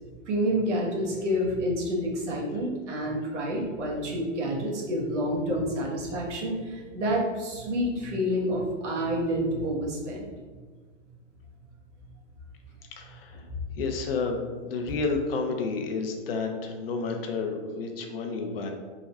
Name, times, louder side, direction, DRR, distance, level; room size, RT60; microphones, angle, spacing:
voice 1, 0.3-10.3 13.5-13.6, equal, 70° right, -2 dB, 1.2 m, -28 dB
voice 2, 12.9-13.4 13.8-18.7, left 4 dB, 50° left, 4 dB, 0.6 m, -30 dB
3.6 x 2.2 x 4.1 m, 1.5 s
hypercardioid pair, 170°, 37 cm